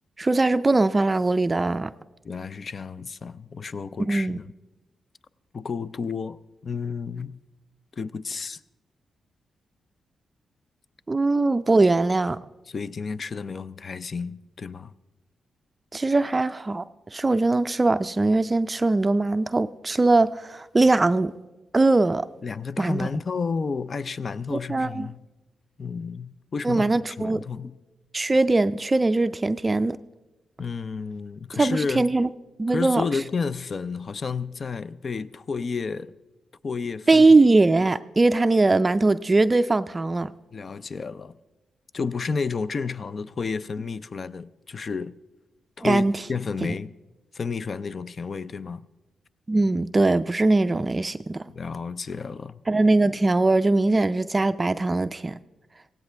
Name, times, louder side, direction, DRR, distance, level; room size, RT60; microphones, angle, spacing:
voice 1, 0.2-1.9 4.1-4.4 11.1-12.4 15.9-16.8 17.1-21.3 21.7-22.3 22.8-23.1 24.5-25.1 26.6-27.4 28.1-30.0 31.5-32.3 32.6-33.0 37.1-40.3 45.8-46.1 49.5-51.4 52.7-55.4, right 2 dB, 25° right, 0.4 m, -21 dB
voice 2, 2.2-4.5 5.5-6.4 6.6-7.4 7.9-8.6 12.7-14.9 22.4-25.2 25.8-27.8 30.6-32.1 32.7-36.1 36.6-37.3 40.5-41.4 41.9-45.2 45.8-46.9 47.3-48.9 51.5-52.6, left 5 dB, 45° left, 0.5 m, -31 dB
17.0 x 16.5 x 3.4 m
cardioid pair, 75°, 0 cm